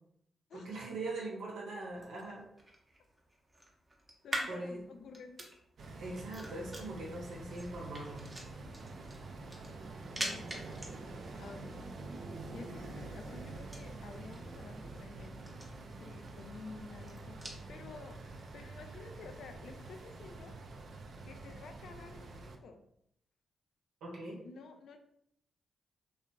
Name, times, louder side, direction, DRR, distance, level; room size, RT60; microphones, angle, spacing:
voice 1, 0.5-2.4 4.5-4.8 6.0-8.2 24.0-24.4, right 2 dB, 80° right, -3 dB, 0.7 m, -41 dB
sound 1, 1.8-17.6, right 1 dB, 25° right, 0.7 m, -47 dB
voice 2, 4.2-5.5 10.2-11.9 12.3-15.6 16.0-18.2 18.5-20.6 21.2-22.8 24.4-25.0, left 4 dB, 70° left, 6 dB, 0.3 m, -51 dB
sound 2, 5.8-22.6, right 3 dB, 65° right, 0.3 m, -47 dB
2.7 x 2.3 x 2.2 m, 0.72 s
hypercardioid pair, 40°, 0 cm